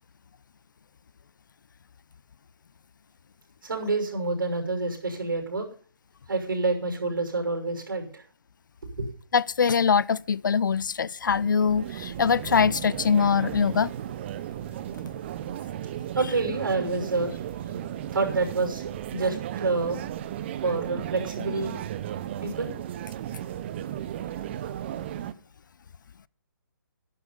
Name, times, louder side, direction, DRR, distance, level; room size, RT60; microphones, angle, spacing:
voice 1, 3.6-5.7 6.3-8.2 8.9-9.1 16.1-17.3 18.1-18.8 19.1-20.0 20.6-21.8 22.4-22.7, right 3 dB, 70° right, 6.1 m, -28 dB
voice 2, 9.3-13.9, left 6 dB, 60° left, 0.5 m, -23 dB
sound 1, 11.3-25.3, right 11 dB, 30° right, 0.7 m, -35 dB
11.5 x 11.5 x 5.5 m
figure-of-eight pair, 145°, 12 cm